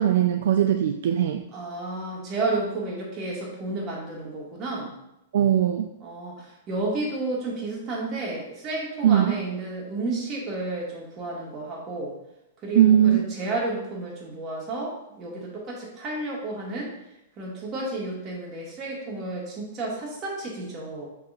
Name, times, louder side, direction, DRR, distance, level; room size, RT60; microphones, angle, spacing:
voice 1, 0.0-1.4 5.3-5.9 9.0-9.4 12.8-13.3, right 10 dB, 60° right, 6 dB, 0.4 m, -20 dB
voice 2, 1.5-4.9 6.0-12.1 12.6-16.9 17.4-21.1, right 2 dB, 30° right, -3 dB, 2.2 m, -31 dB
6.8 x 5.7 x 2.7 m, 0.86 s
figure-of-eight pair, 100°, 0 cm